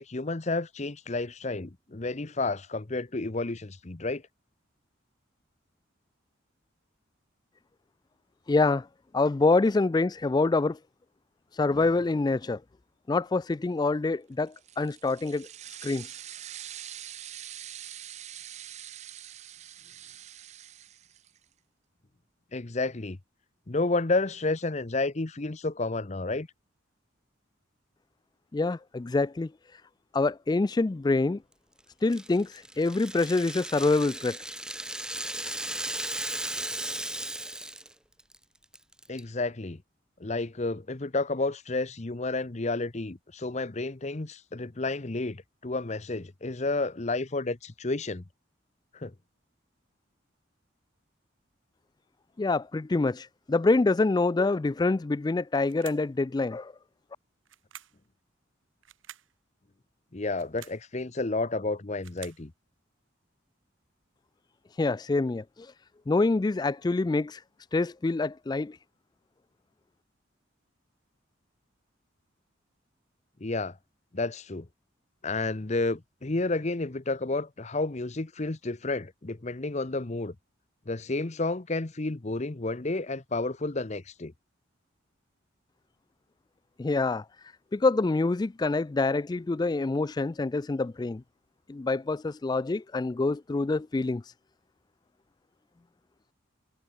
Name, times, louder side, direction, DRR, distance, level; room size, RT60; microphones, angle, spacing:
voice 1, 0.0-4.2 22.5-23.2 23.7-26.5 39.1-39.8 40.2-48.2 48.9-49.1 60.1-62.5 73.4-73.8 74.1-74.7 75.2-80.3 80.9-84.3, left 3 dB, 35° left, 0.9 m, -31 dB
voice 2, 8.5-8.9 9.1-10.8 11.5-12.6 13.1-15.5 15.8-16.2 28.5-29.8 30.1-31.4 32.0-34.4 52.4-56.7 64.7-65.7 66.1-67.4 67.7-68.8 86.8-87.2 87.7-91.2 91.7-94.3, left 3 dB, 20° left, 0.3 m, -26 dB
sound 1, 14.5-21.4, right 11 dB, 35° right, 0.5 m, -44 dB
Rattle (instrument), 32.1-37.9 38.2-38.4 38.7-39.2, right 1 dB, 5° right, 1.2 m, -36 dB
sound 2, 55.6-56.2 57.5-58.1 58.8-59.3 60.3-60.9 61.7-62.5, right 11 dB, 85° right, 1.3 m, -49 dB
head